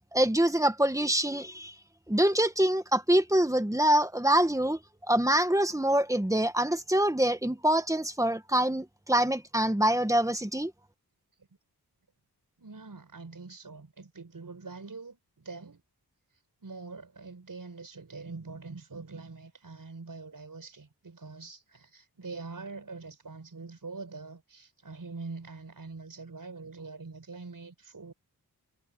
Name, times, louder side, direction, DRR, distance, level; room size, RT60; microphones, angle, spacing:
voice 1, 0.1-1.7 2.1-4.8 5.1-10.7, right 1 dB, 10° right, 1.6 m, -25 dB
voice 2, 12.6-15.8 16.6-28.1, right 4 dB, 55° right, 6.8 m, -44 dB
wide cardioid pair, 100°, 39 cm